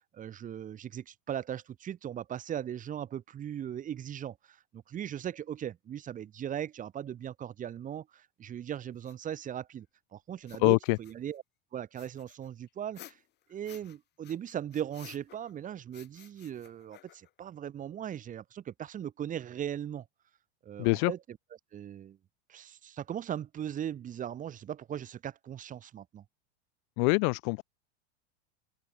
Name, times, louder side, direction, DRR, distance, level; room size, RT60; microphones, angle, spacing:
voice 1, 0.0-9.9 10.1-11.4 11.7-13.2 13.5-20.1 20.6-21.4 21.7-22.2 22.5-26.2, right 10 dB, 20° right, 4.2 m, -39 dB
sound 1, 9.0-9.1 10.4-11.4 12.0-14.0 14.2-15.6 15.9-17.4, left 13 dB, 30° left, 5.0 m, -54 dB
voice 2, 10.6-11.0 20.8-21.1 27.0-27.6, left 40 dB or more, 45° left, 1.6 m, -24 dB
open air
supercardioid pair, 155°, 34 cm